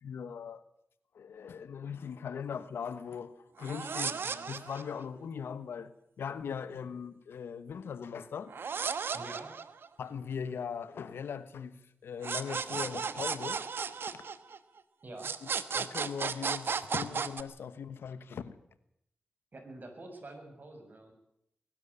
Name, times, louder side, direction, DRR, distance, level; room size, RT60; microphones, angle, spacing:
voice 1, 0.0-0.6 1.1-8.5 10.0-13.6 15.4-15.5 15.7-18.6, left 7 dB, 90° left, 1.2 m, -40 dB
sound 1, 3.6-5.0 8.5-10.1 12.2-14.8 15.2-17.4, right 6 dB, 75° right, 1.2 m, -35 dB
voice 2, 9.1-9.6 15.0-15.3 19.5-21.1, right 2 dB, 50° right, 6.9 m, -46 dB
22.0 x 12.5 x 10.0 m
cardioid pair, 50°, 4 cm